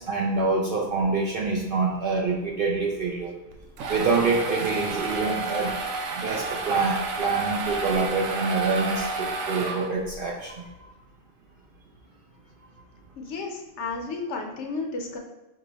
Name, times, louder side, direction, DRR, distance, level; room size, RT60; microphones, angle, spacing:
voice 1, 0.0-3.4 3.9-5.8 6.1-10.9, right 3 dB, 60° right, -1 dB, 0.6 m, -26 dB
sound 1, 3.5-10.2, right 3 dB, 90° right, 1.0 m, -30 dB
voice 2, 13.2-15.2, left 3 dB, 65° left, 2 dB, 0.9 m, -32 dB
4.7 x 2.3 x 3.9 m, 1.1 s
omnidirectional pair, 1.3 m